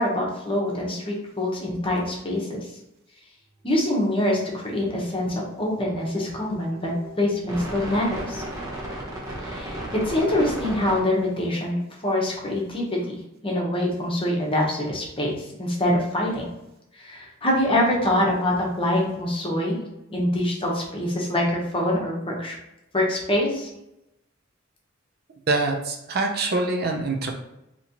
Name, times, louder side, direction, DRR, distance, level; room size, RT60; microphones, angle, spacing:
voice 1, 0.0-2.7 3.6-8.4 9.4-16.5 16.9-22.5 22.9-23.7, left 1 dB, 25° left, -2 dB, 0.9 m, -25 dB
sound 1, 4.1-11.0, right 1 dB, 20° right, 0.9 m, -36 dB
voice 2, 25.5-27.3, right 3 dB, 50° right, 3 dB, 0.5 m, -24 dB
4.0 x 3.0 x 2.9 m, 0.87 s
head